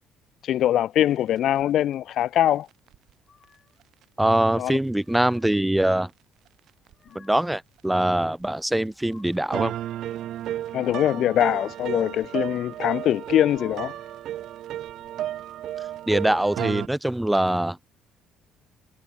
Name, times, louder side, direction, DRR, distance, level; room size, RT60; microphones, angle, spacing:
voice 1, 0.4-2.7 4.6-4.8 10.7-13.9, left 12 dB, 60° left, 0.7 m, -23 dB
sound 1, 1.6-1.7 2.9-3.0 4.2-4.3 5.5-5.6 6.9-7.0 8.2-8.3 9.5-16.9, right 12 dB, 60° right, 1.6 m, -33 dB
sound 2, 3.2-3.8 4.7-5.7 6.6-7.6 8.6-9.7 11.2-12.1 13.2-14.3, left 6 dB, 30° left, 6.5 m, -56 dB
voice 2, 4.2-6.1 7.1-9.7 16.1-17.8, right 1 dB, 5° right, 0.5 m, -23 dB
cardioid pair, 140°, 0 cm